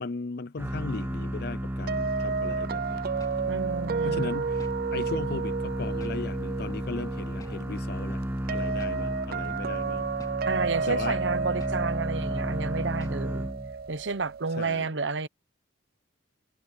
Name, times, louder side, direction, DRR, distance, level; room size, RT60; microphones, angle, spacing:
voice 1, 0.0-3.0 4.0-8.2 8.5-10.1 10.9-11.2 14.6-14.9, left 3 dB, 55° left, 0.5 m, -37 dB
sound 1, 0.6-14.0, equal, 10° right, 1.1 m, -34 dB
sound 2, 1.9-14.7, right 5 dB, 50° right, 0.5 m, -32 dB
sound 3, 3.2-3.4 3.9-4.1 4.6-4.8 5.3-5.5 6.0-6.2 6.7-6.9 7.4-7.6 8.1-8.3 8.8-9.0 9.5-9.7 10.2-10.4 10.9-11.1 11.6-11.8 12.3-12.5 13.0-13.2, left 1 dB, 20° left, 3.0 m, -49 dB
voice 2, 3.4-4.3 10.4-13.5 13.9-15.3, right 4 dB, 70° right, 0.9 m, -31 dB
head